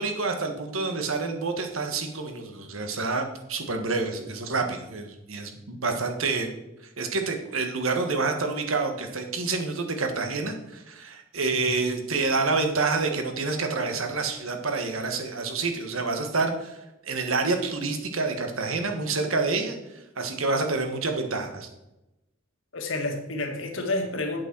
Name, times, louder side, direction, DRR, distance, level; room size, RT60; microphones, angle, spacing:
voice 1, 0.0-6.5 7.0-16.8 17.0-19.8 20.2-21.7, right 3 dB, 85° right, 5 dB, 1.6 m, -28 dB
voice 2, 22.7-24.4, left 2 dB, 70° left, 4 dB, 1.8 m, -30 dB
8.3 x 7.9 x 6.1 m, 0.95 s
head